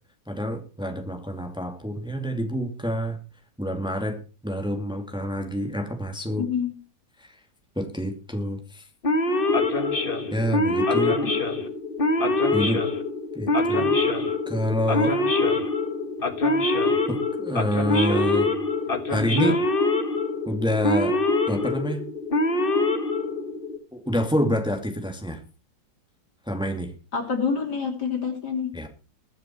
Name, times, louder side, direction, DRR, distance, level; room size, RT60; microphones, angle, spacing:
voice 1, 0.3-3.2 3.6-6.5 7.2-7.4 7.8-8.9 10.3-11.2 12.5-12.9 13.3-13.9 14.5-15.2 17.1-18.5 19.1-19.6 20.5-21.2 21.5-22.1 23.9-25.4 26.5-26.9 28.7-28.9, equal, ahead, 4 dB, 2.4 m, -27 dB
voice 2, 6.4-6.7 11.2-11.3 27.1-28.7, left 6 dB, 60° left, 3 dB, 3.8 m, -27 dB
Male speech man speaking / Siren, 9.0-23.8, left 2 dB, 30° left, 1.5 m, -24 dB
21.5 x 7.5 x 4.5 m, 0.33 s
omnidirectional pair, 2.0 m